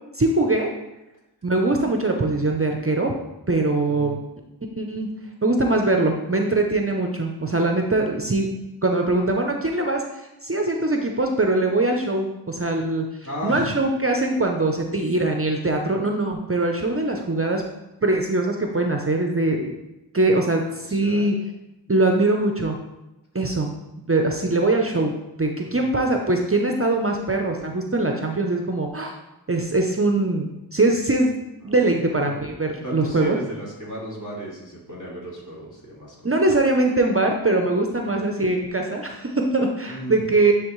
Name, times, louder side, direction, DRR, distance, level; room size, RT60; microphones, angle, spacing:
voice 1, 0.1-0.7 1.4-3.1 3.5-4.2 4.8-5.1 5.4-8.5 8.8-10.0 10.4-13.1 13.4-17.6 18.0-19.7 20.1-21.3 21.9-22.8 23.3-23.7 24.1-25.1 25.4-29.1 29.5-31.4 31.6-33.4 36.2-40.5, right 2 dB, 30° right, 2 dB, 0.6 m, -22 dB
voice 2, 3.8-4.2 13.2-13.7 20.4-21.3 25.6-25.9 31.7-32.4 32.8-36.1 38.0-38.2 39.9-40.3, right 1 dB, 45° left, -6 dB, 2.3 m, -35 dB
9.9 x 3.5 x 3.1 m, 0.98 s
wide cardioid pair, 50°, 43 cm